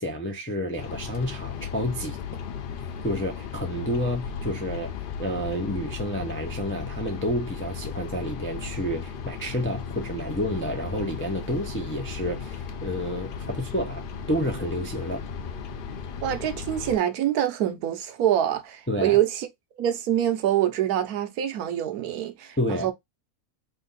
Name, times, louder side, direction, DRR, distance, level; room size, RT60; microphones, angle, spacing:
voice 1, 0.0-2.2 3.0-4.9 5.2-14.0 14.3-15.2 18.9-19.2 22.6-22.9, equal, 20° left, 0.3 m, -29 dB
sound 1, 0.8-17.0, left 6 dB, 80° left, 0.4 m, -36 dB
voice 2, 16.2-19.5 19.8-22.9, right 11 dB, 85° right, 1.2 m, -25 dB
3.4 x 2.6 x 3.9 m
omnidirectional pair, 1.5 m